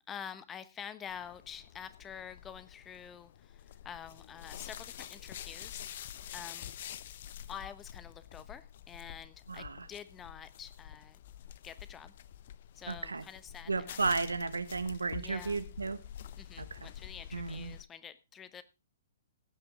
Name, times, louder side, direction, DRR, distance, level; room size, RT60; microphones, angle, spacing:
voice 1, 0.1-5.8 6.3-6.7 7.5-11.2 11.6-12.1 12.7-14.0 15.2-15.6 16.4-18.6, left 8 dB, 20° left, 13 dB, 1.1 m, -47 dB
sound 1, 1.1-17.8, left 10 dB, 50° left, 0.8 m, -48 dB
voice 2, 9.5-9.9 12.9-13.2 13.7-16.0 16.6-16.8 17.3-17.7, right 4 dB, 80° right, 13 dB, 1.3 m, -34 dB
16.0 x 9.0 x 3.7 m, 0.28 s
figure-of-eight pair, 115°, 0 cm